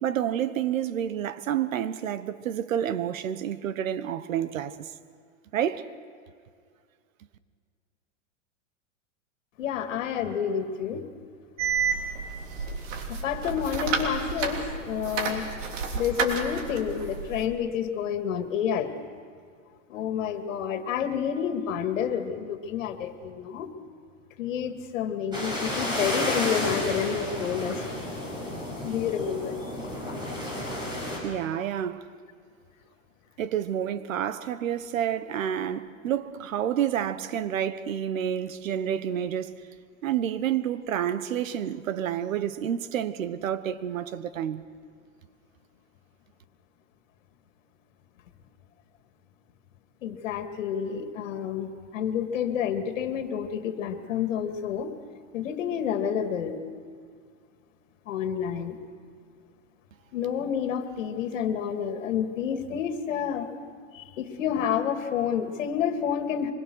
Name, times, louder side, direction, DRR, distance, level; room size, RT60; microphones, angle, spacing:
voice 1, 0.0-4.9 5.5-5.9 31.2-32.0 33.4-39.6 40.0-44.6, right 10 dB, 85° right, 1.3 m, -29 dB
voice 2, 9.6-11.0 13.1-15.5 15.9-18.9 19.9-23.7 24.4-27.9 28.8-29.6 50.0-54.9 55.3-56.6 58.1-58.8 60.1-63.5 63.9-66.5, left 8 dB, 70° left, 2.4 m, -29 dB
sound 1, 11.6-17.4, right 5 dB, 65° right, 3.3 m, -31 dB
sound 2, 25.3-31.2, left 1 dB, 10° right, 6.3 m, -32 dB
25.0 x 22.0 x 6.4 m
supercardioid pair, 160°, 39 cm